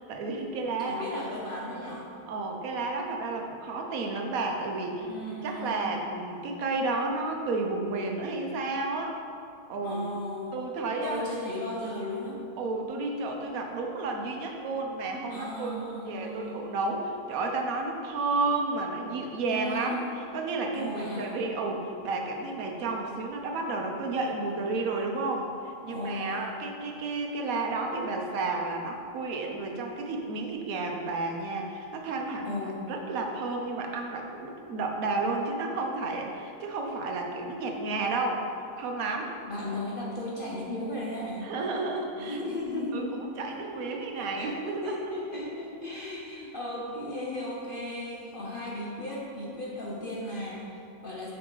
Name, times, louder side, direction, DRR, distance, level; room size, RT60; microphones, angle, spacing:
voice 1, 0.1-1.2 2.3-9.2 9.7-10.0 10.5-11.2 12.6-20.0 20.3-38.4 38.8-39.4 41.4-42.4 42.9-45.0, right 3 dB, 70° right, 2 dB, 1.2 m, -32 dB
voice 2, 0.8-2.1 5.1-5.9 9.8-10.6 11.0-12.4 15.3-16.6 19.4-20.1 20.7-21.4 25.9-26.5 32.4-33.0 39.5-41.5 42.2-43.5 43.8-51.3, left 1 dB, 55° left, -4 dB, 0.6 m, -36 dB
6.6 x 4.8 x 3.9 m, 2.5 s
omnidirectional pair, 1.6 m